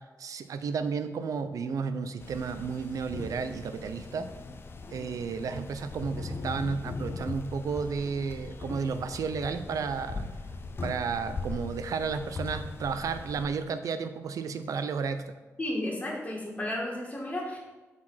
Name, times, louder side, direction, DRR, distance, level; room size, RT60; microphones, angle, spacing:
voice 1, 0.2-4.3 4.9-10.3 10.8-15.3, right 5 dB, 75° right, 10 dB, 0.6 m, -32 dB
sound 1, 2.2-13.5, left 3 dB, 40° left, 0.6 m, -40 dB
voice 2, 15.6-17.6, left 1 dB, 25° left, -3 dB, 2.1 m, -33 dB
7.4 x 4.2 x 5.7 m, 1.2 s
wide cardioid pair, 135°, 6 cm